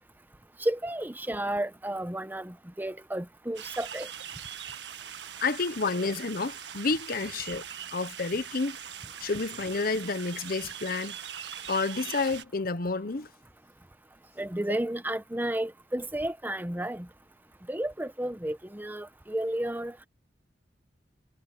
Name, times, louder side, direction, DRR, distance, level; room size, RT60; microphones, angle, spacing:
voice 1, 0.6-4.1 14.4-17.1 17.7-20.1, right 1 dB, 10° right, 1.1 m, -32 dB
sound 1, 3.5-12.4, right 9 dB, 85° right, 1.6 m, -41 dB
voice 2, 5.4-7.6 7.9-8.8 9.2-11.2 11.7-13.3, left 3 dB, 55° left, 1.0 m, -30 dB
head